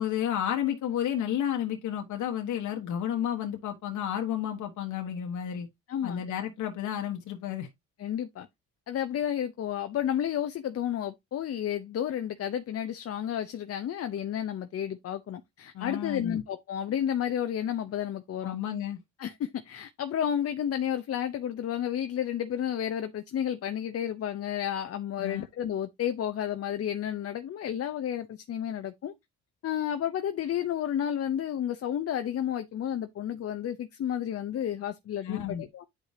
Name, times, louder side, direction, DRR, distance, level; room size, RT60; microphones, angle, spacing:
voice 1, 0.0-5.7 6.0-7.7 15.7-16.4 18.4-19.0 25.2-25.4 35.2-35.6, left 10 dB, 75° left, 1.3 m, -31 dB
voice 2, 5.9-6.2 8.0-8.5 8.9-18.6 19.2-29.1 29.6-35.9, left 10 dB, 50° left, 0.7 m, -31 dB
9.8 x 4.9 x 2.8 m
cardioid pair, 90°, 30 cm